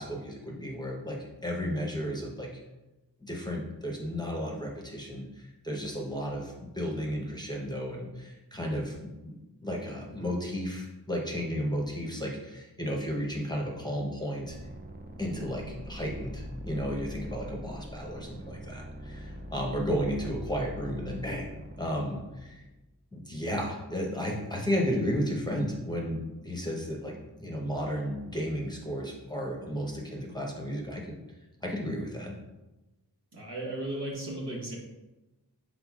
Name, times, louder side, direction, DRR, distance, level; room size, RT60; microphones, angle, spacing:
voice 1, 0.0-2.6 3.2-9.3 9.6-14.6 15.2-21.5 21.8-22.6 23.1-27.1 27.4-31.1 31.6-32.4, equal, 10° left, -1 dB, 0.8 m, -33 dB
sound 1, 14.4-22.9, equal, 25° right, 0.5 m, -42 dB
voice 2, 33.3-34.8, right 1 dB, 75° right, -4 dB, 1.4 m, -35 dB
5.8 x 3.8 x 2.4 m, 1.0 s
wide cardioid pair, 55°, 41 cm